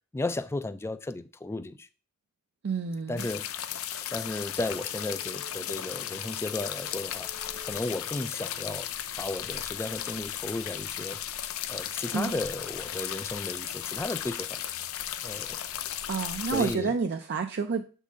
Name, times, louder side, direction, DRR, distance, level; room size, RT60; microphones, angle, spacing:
voice 1, 0.1-1.9 3.1-3.5 4.1-7.3 7.6-8.9 9.2-11.2 11.7-14.5 15.2-15.6 16.5-16.9, left 2 dB, 10° left, 0.3 m, -34 dB
voice 2, 2.6-3.3 12.1-12.3 16.1-17.8, right 5 dB, 50° right, 0.4 m, -29 dB
sound 1, 3.2-16.8, left 11 dB, 65° left, 0.5 m, -36 dB
sound 2, 4.7-10.0, left 2 dB, 25° right, 0.8 m, -52 dB
7.3 x 3.9 x 3.6 m
head